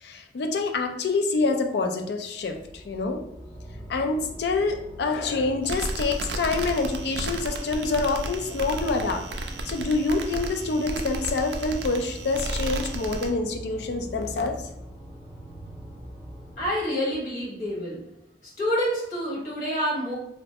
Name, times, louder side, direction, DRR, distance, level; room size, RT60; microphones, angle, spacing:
voice 1, 0.0-3.2 3.9-9.2 9.7-14.5, left 3 dB, 70° left, 5 dB, 0.4 m, -26 dB
sound 1, 2.4-16.7, equal, 10° right, 1.5 m, -41 dB
sound 2, 5.6-13.3, right 2 dB, 70° right, 0.3 m, -33 dB
voice 2, 16.6-18.0 18.4-20.1, equal, 45° left, -6 dB, 1.3 m, -28 dB
3.0 x 2.1 x 2.8 m, 0.82 s
head